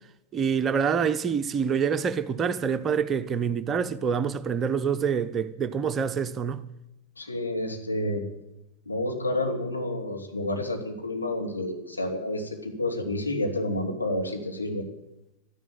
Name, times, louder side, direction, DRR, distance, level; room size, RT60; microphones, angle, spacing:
voice 1, 0.3-6.6, right 6 dB, 25° right, 0.8 m, -26 dB
voice 2, 7.2-8.2 8.9-14.8, left 1 dB, 80° left, 2.6 m, -29 dB
12.5 x 11.0 x 9.3 m
figure-of-eight pair, 90°, 0 cm